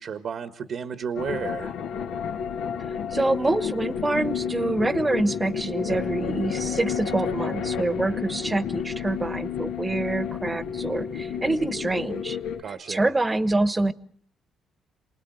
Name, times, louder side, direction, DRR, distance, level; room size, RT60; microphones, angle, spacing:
voice 1, 0.0-1.7 12.6-13.1, right 6 dB, 60° right, 1.4 m, -32 dB
sound 1, 1.1-12.6, left 7 dB, 90° left, 1.8 m, -31 dB
voice 2, 3.1-12.4 12.7-13.9, right 2 dB, 20° right, 1.2 m, -26 dB
28.5 x 19.5 x 8.0 m
cardioid pair, 90°, 0 cm